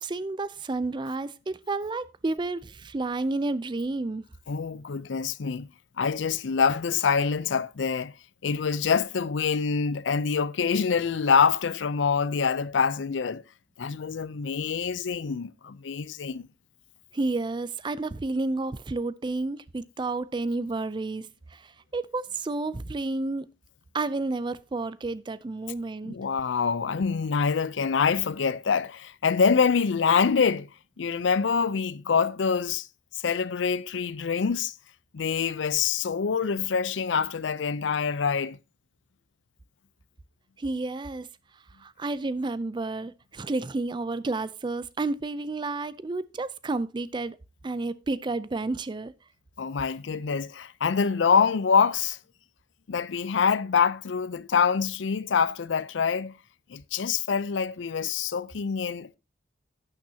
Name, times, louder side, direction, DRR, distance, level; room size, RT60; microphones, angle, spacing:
voice 1, 0.0-4.2 17.1-23.5 23.9-26.2 40.6-41.3 41.8-47.4 47.6-49.1, right 3 dB, 25° right, 0.4 m, -31 dB
voice 2, 4.5-5.7 6.0-8.1 8.4-13.4 13.8-16.5 26.0-30.7 31.0-32.9 33.2-34.7 35.1-38.6 49.6-52.2 52.9-56.4 56.7-59.2, left 6 dB, 75° left, 0.5 m, -25 dB
11.5 x 9.0 x 2.7 m
head